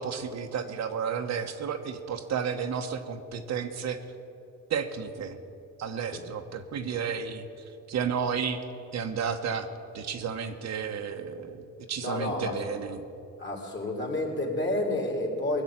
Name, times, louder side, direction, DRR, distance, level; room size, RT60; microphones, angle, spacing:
voice 1, 0.0-4.0 4.7-5.4 5.8-7.4 7.9-8.6 8.9-9.7 9.9-13.0, right 6 dB, 60° right, 6 dB, 1.1 m, -32 dB
voice 2, 12.0-12.6 13.4-15.6, left 1 dB, 35° left, 1 dB, 3.4 m, -30 dB
19.5 x 7.3 x 8.8 m, 2.7 s
cardioid pair, 90°, 30 cm